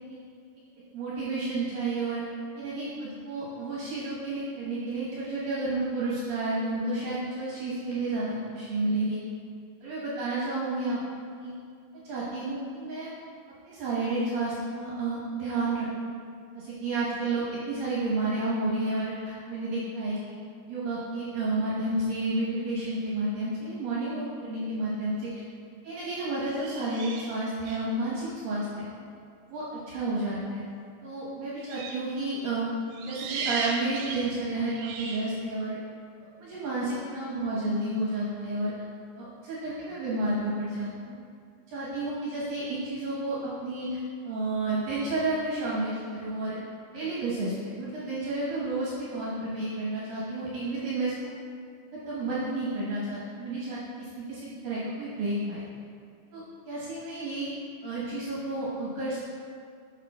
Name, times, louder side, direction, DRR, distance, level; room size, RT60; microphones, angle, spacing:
voice 1, 0.9-2.2 2.5-9.2 9.8-11.0 11.4-11.5 12.0-13.1 13.7-16.1 16.5-20.4 20.7-25.4 25.8-28.8 29.5-30.6 31.0-32.7 33.0-35.8 36.4-38.7 39.2-41.2 41.7-46.6 46.9-51.3 51.9-55.6 56.3-57.5 57.8-59.2, right 2 dB, 70° right, -8 dB, 2.4 m, -31 dB
sound 1, 25.0-25.3 26.4-27.9 31.6-32.1 32.9-35.4, right 4 dB, 85° right, 2.7 m, -36 dB
9.7 x 6.9 x 2.2 m, 2.3 s
omnidirectional pair, 5.0 m